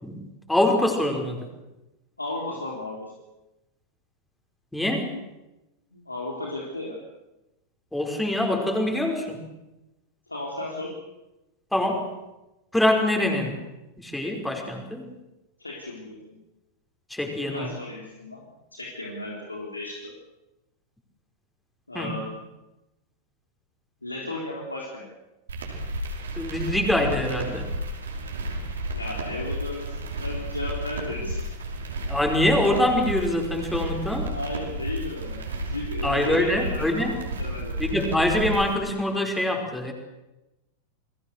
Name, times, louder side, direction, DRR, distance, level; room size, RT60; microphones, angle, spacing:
voice 1, 0.0-1.5 4.7-5.1 7.9-9.4 11.7-12.1 12.7-13.6 14.0-15.1 17.1-17.7 21.9-22.1 26.4-27.7 32.1-34.3 36.0-37.1 37.8-39.9, left 1 dB, 5° left, 2 dB, 5.5 m, -24 dB
voice 2, 2.2-3.1 5.9-7.0 10.3-10.9 15.6-16.4 17.5-18.4 18.7-20.1 21.9-22.3 24.0-25.1 28.9-31.5 33.8-33.9 34.3-37.7, left 2 dB, 80° left, -1 dB, 3.9 m, -34 dB
sound 1, 25.5-38.7, right 1 dB, 70° right, 5.6 m, -32 dB
29.5 x 21.5 x 6.7 m, 0.99 s
figure-of-eight pair, 90°, 0 cm